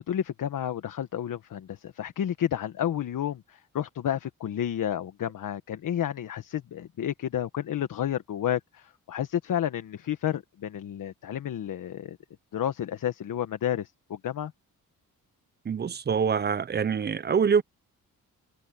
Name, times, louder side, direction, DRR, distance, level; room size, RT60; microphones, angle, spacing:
voice 1, 0.0-12.2 12.5-14.5, left 10 dB, 65° left, 1.3 m, -31 dB
voice 2, 15.6-17.6, right 6 dB, 30° right, 0.7 m, -25 dB
cardioid pair, 110°, 35 cm